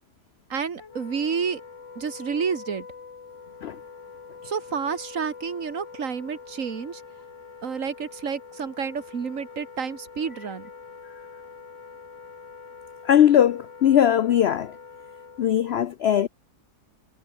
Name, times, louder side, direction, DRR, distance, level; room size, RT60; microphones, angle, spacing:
voice 1, 0.5-1.6 2.0-2.9 4.4-7.0 7.6-10.7, right 6 dB, 55° right, 1.9 m, -30 dB
Wind instrument woodwind instrument, 0.8-15.7, left 5 dB, 50° left, 2.2 m, -44 dB
voice 2, 13.0-14.7 15.4-16.3, left 10 dB, 70° left, 0.6 m, -19 dB
omnidirectional pair, 1.7 m